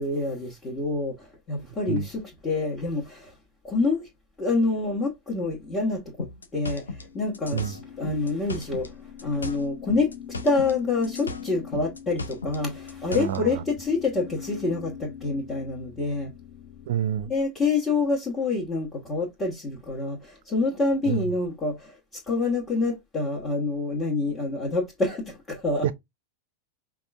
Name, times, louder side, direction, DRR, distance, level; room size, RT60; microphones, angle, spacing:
voice 1, 0.0-3.3 3.6-4.1 4.4-6.3 6.5-10.1 10.4-16.3 17.3-25.9, left 3 dB, 15° left, 1.4 m, -27 dB
sound 1, 6.2-8.9 9.2-10.8 11.0-13.4, left 3 dB, 75° left, 0.6 m, -36 dB
sound 2, 6.7-16.9, left 9 dB, 55° left, 0.9 m, -43 dB
voice 2, 13.1-13.6 16.9-17.3 21.0-21.2 25.8-25.9, right 10 dB, 55° right, 0.5 m, -28 dB
5.1 x 2.5 x 3.5 m
figure-of-eight pair, 90°, 0 cm